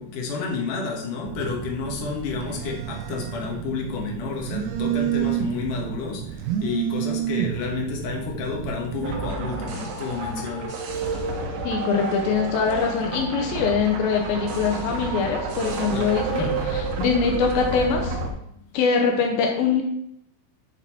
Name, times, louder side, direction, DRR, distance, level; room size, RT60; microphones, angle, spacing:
voice 1, 0.0-10.8 15.9-16.6, left 4 dB, 65° left, -1 dB, 2.3 m, -30 dB
Telephone, 1.2-9.3, right 11 dB, 85° right, 2.2 m, -30 dB
sound 1, 9.0-18.3, right 3 dB, 70° right, 2.5 m, -30 dB
voice 2, 11.6-18.2 18.7-19.8, left 5 dB, 85° left, 2 dB, 2.1 m, -23 dB
10.5 x 4.3 x 4.2 m, 0.74 s
omnidirectional pair, 5.4 m